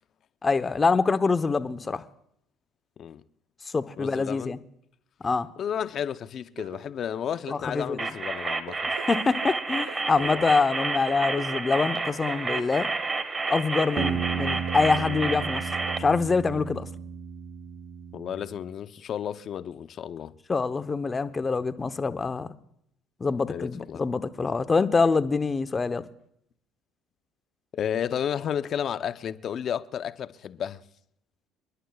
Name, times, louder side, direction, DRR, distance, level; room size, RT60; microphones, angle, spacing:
voice 1, 0.4-2.0 3.7-4.6 5.2-5.5 7.6-8.0 8.9-12.9 13.5-15.6 16.0-16.9 20.5-22.5 23.2-26.1, left 4 dB, 25° left, 0.9 m, -25 dB
voice 2, 4.0-4.6 5.6-8.8 10.2-10.5 18.1-20.3 23.5-24.0 27.7-30.8, left 9 dB, 50° left, 0.7 m, -32 dB
sound 1, 6.6-16.0, right 8 dB, 85° right, 2.4 m, -45 dB
sound 2, 8.0-16.0, right 3 dB, 25° right, 1.5 m, -30 dB
sound 3, 14.0-18.6, right 7 dB, 50° right, 0.7 m, -34 dB
30.0 x 11.0 x 2.4 m
supercardioid pair, 75°, 0 cm